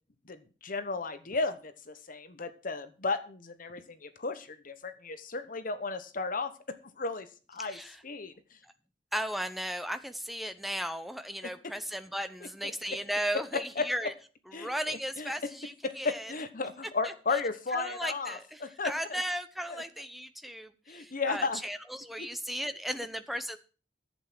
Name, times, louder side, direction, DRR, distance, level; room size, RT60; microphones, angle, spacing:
voice 1, 0.3-7.8 8.0-8.3 11.6-11.7 13.8-13.9 14.5-15.3 15.8-19.2 19.7-19.8 20.9-21.6 22.2-22.3, left 4 dB, 45° left, 11 dB, 1.0 m, -34 dB
voice 2, 7.6-8.0 8.6-8.7 9.1-14.1 14.5-16.3 17.0-17.1 17.7-23.6, equal, ahead, 10 dB, 0.8 m, -36 dB
11.0 x 8.1 x 6.0 m, 0.36 s
head